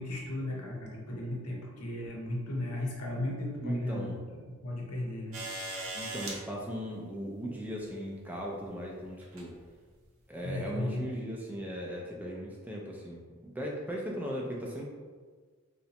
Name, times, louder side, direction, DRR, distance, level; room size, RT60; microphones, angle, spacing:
voice 1, 0.0-4.1 4.6-5.4 10.4-11.0, left 1 dB, 85° left, -1 dB, 0.7 m, -35 dB
voice 2, 3.6-4.2 5.9-9.5 10.3-14.9, equal, 5° right, -3 dB, 0.3 m, -38 dB
sound 1, 5.3-6.4 7.8-7.9 9.2-9.5 10.4-10.5, right 2 dB, 65° right, 0.6 m, -38 dB
3.8 x 2.1 x 2.8 m, 1.5 s
head